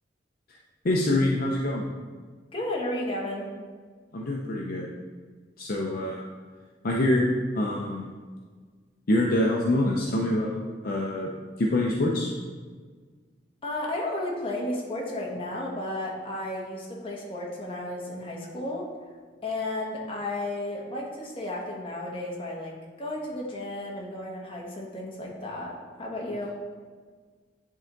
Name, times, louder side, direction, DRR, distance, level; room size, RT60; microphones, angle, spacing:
voice 1, 0.8-1.9 4.1-4.9 5.6-6.2 6.8-7.3 7.5-8.1 9.1-11.3 11.6-12.3, left 1 dB, 50° left, -2 dB, 0.6 m, -25 dB
voice 2, 2.5-3.5 13.6-18.9 19.4-26.6, left 1 dB, 30° left, -3 dB, 1.2 m, -33 dB
10.0 x 3.4 x 3.9 m, 1.5 s
head